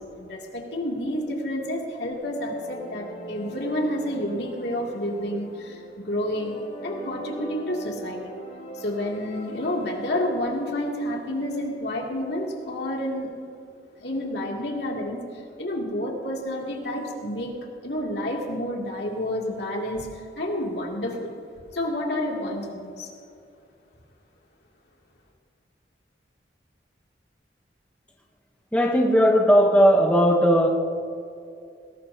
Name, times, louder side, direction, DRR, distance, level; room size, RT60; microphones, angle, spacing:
voice 1, 0.2-6.6 6.8-8.2 8.7-13.3 14.0-17.5 17.8-21.3 21.7-23.1, left 1 dB, 70° left, -1 dB, 2.7 m, -29 dB
sound 1, 2.2-10.1, equal, 40° left, 3.3 m, -41 dB
voice 2, 28.7-30.7, equal, 10° left, -1 dB, 1.0 m, -17 dB
20.5 x 18.0 x 2.9 m, 2.5 s
head